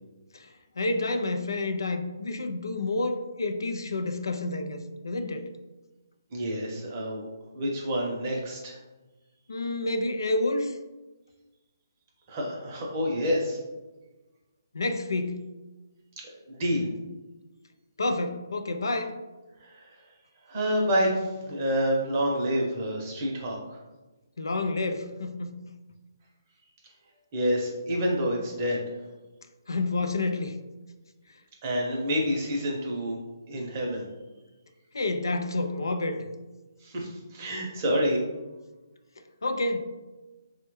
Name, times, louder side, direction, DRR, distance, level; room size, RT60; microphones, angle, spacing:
voice 1, 0.3-5.5 9.5-10.8 14.7-15.4 18.0-19.1 24.4-25.6 29.7-30.6 34.9-36.3 39.4-39.8, left 2 dB, 85° left, 8 dB, 0.3 m, -29 dB
voice 2, 6.3-7.3 7.5-8.7 12.3-13.6 16.5-16.9 19.6-19.7 20.5-23.6 27.3-28.8 31.6-33.2 33.5-34.0 36.8-38.2, equal, 30° right, -1 dB, 0.7 m, -28 dB
3.3 x 2.1 x 3.1 m, 1.2 s
hypercardioid pair, 160°, 2 cm